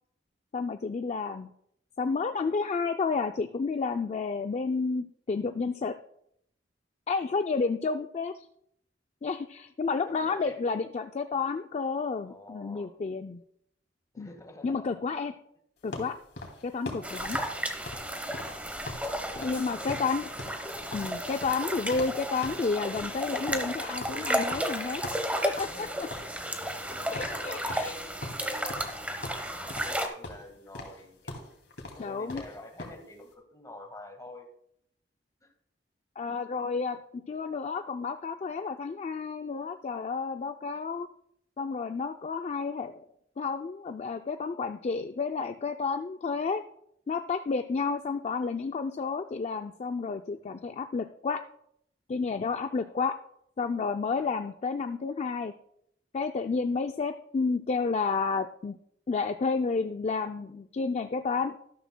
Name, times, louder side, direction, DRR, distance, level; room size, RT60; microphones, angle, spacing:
voice 1, 0.5-1.5 2.0-6.0 7.1-8.5 9.2-13.4 14.2-14.3 14.6-15.3 15.8-16.2 16.6-17.4 19.4-20.3 20.9-25.0 25.4-25.7 27.1-27.9 32.0-32.4 36.2-41.1 41.6-43.1 43.4-46.6 47.1-51.4 52.1-53.2 53.6-55.5 56.1-58.8 59.1-61.6, left 4 dB, 40° left, 8 dB, 0.4 m, -31 dB
voice 2, 10.1-10.8 12.3-12.9 14.1-14.9 19.2-19.9 25.5-26.3 26.9-31.5 31.9-34.5 35.4-35.5 50.4-50.7 52.5-53.0 54.1-54.3, left 2 dB, 20° left, 4 dB, 1.6 m, -48 dB
sound 1, 15.9-19.1 19.4-19.6 19.9-22.2 22.4-22.7 23.0-25.8 26.1-26.9 27.1-27.4 27.7-29.0 29.2-30.0 30.2-33.0, left 2 dB, 70° left, 2.5 m, -41 dB
sound 2, 17.0-30.1, right 1 dB, 10° right, 1.0 m, -33 dB
12.5 x 12.0 x 2.2 m, 0.73 s
head